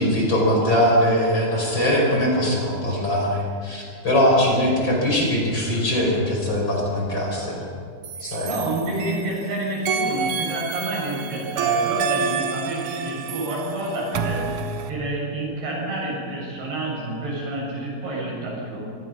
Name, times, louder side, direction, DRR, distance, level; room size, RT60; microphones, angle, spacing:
voice 1, 0.0-7.6 8.2-8.6, equal, 30° left, -2 dB, 5.6 m, -21 dB
sound 1, 8.0-9.4 9.9-14.9, right 6 dB, 65° right, 2.3 m, -28 dB
voice 2, 8.2-14.5 14.9-18.8, right 1 dB, 90° right, -3 dB, 9.3 m, -29 dB
27.0 x 18.5 x 5.9 m, 2.2 s
omnidirectional pair, 4.4 m